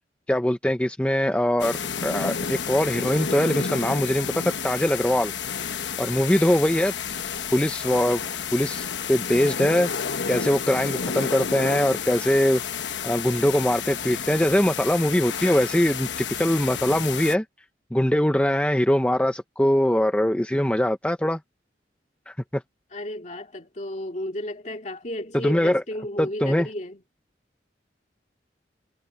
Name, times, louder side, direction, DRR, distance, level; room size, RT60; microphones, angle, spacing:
voice 1, 0.3-1.8 2.0-5.3 6.0-6.9 7.5-8.2 8.5-9.9 10.3-12.6 13.0-17.4 17.9-21.4 22.3-22.6 25.3-25.8 26.2-26.7, left 1 dB, 5° left, 0.7 m, -22 dB
sound 1, 1.6-17.3, left 6 dB, 80° left, 1.1 m, -31 dB
voice 2, 22.9-27.0, left 1 dB, 40° left, 2.3 m, -33 dB
head